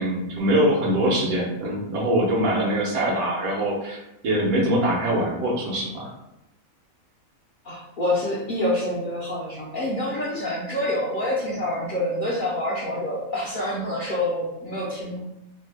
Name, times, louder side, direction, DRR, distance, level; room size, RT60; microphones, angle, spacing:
voice 1, 0.0-6.1, right 1 dB, 85° right, -4 dB, 1.4 m, -23 dB
voice 2, 7.6-15.2, left 1 dB, 55° left, -6 dB, 0.5 m, -27 dB
3.1 x 2.1 x 3.3 m, 0.88 s
omnidirectional pair, 1.5 m